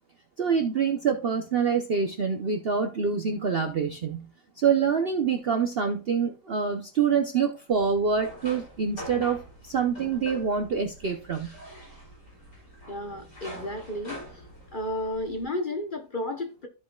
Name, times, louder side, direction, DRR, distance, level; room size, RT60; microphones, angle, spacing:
voice 1, 0.4-4.3 4.6-11.5, right 6 dB, 55° right, 0.7 m, -26 dB
sound 1, 7.7-15.5, equal, 80° left, 4.8 m, -45 dB
voice 2, 12.9-14.4 14.7-16.7, left 1 dB, 40° left, 0.9 m, -33 dB
14.5 x 5.1 x 2.3 m
omnidirectional pair, 1.8 m